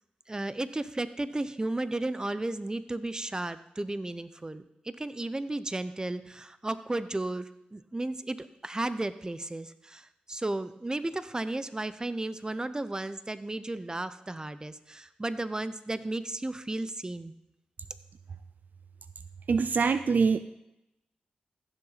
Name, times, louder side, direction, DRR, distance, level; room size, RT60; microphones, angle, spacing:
voice 1, 0.3-17.3, right 2 dB, 25° right, 13 dB, 0.8 m, -34 dB
voice 2, 19.5-20.4, right 5 dB, 65° right, 12 dB, 0.5 m, -24 dB
15.0 x 6.9 x 4.2 m, 0.85 s
cardioid pair, 50°, 3 cm